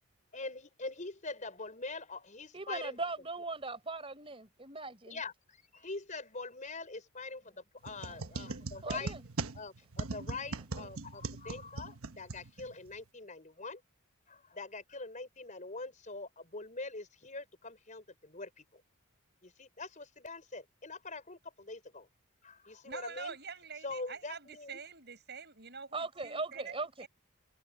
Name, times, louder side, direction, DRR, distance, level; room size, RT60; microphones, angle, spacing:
voice 1, 0.3-3.0 5.1-9.2 9.5-13.8 14.3-18.8 19.4-22.1 22.4-23.4 23.8-24.8, left 3 dB, 35° left, 5.0 m, -44 dB
voice 2, 2.5-5.2 8.8-9.2 25.9-27.1, right 3 dB, 25° right, 4.5 m, -39 dB
sound 1, 7.8-13.0, right 3 dB, 70° right, 1.2 m, -40 dB
voice 3, 22.8-26.7 27.0-27.1, right 5 dB, 50° right, 8.0 m, -46 dB
head